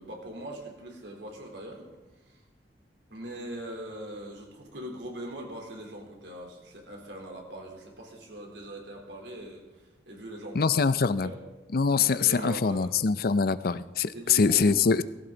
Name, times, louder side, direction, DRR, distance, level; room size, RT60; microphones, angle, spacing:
voice 1, 0.0-1.8 3.1-9.6 10.1-10.8 11.1-11.4 12.0-12.9 14.1-14.8, right 1 dB, 80° right, 0 dB, 3.6 m, -41 dB
voice 2, 10.5-11.3 11.7-15.0, left 5 dB, 55° left, 15 dB, 0.6 m, -24 dB
18.0 x 16.0 x 4.0 m, 1.1 s
head